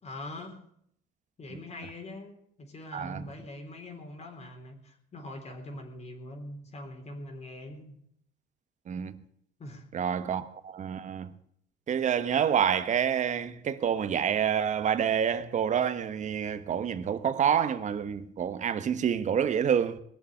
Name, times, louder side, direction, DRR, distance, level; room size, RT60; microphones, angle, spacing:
voice 1, 0.0-0.6 1.4-8.0 9.6-10.3, left 1 dB, 40° left, 3.8 m, -43 dB
voice 2, 2.9-3.3 8.9-9.2 9.9-11.3 11.9-20.0, right 8 dB, 45° right, 1.3 m, -28 dB
20.5 x 7.1 x 9.1 m
cardioid pair, 110°, 17 cm